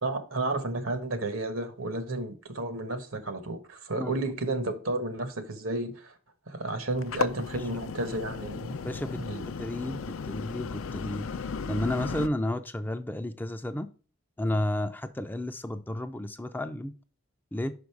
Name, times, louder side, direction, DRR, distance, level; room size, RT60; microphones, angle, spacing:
voice 1, 0.0-6.1 6.5-8.8 9.2-9.4, right 2 dB, 80° right, 1.3 m, -32 dB
sound 1, 6.9-12.3, left 5 dB, 70° left, 0.5 m, -35 dB
voice 2, 8.8-11.3 11.7-13.9 14.4-16.9 17.5-17.7, left 1 dB, 10° left, 0.4 m, -32 dB
5.6 x 5.2 x 4.6 m
head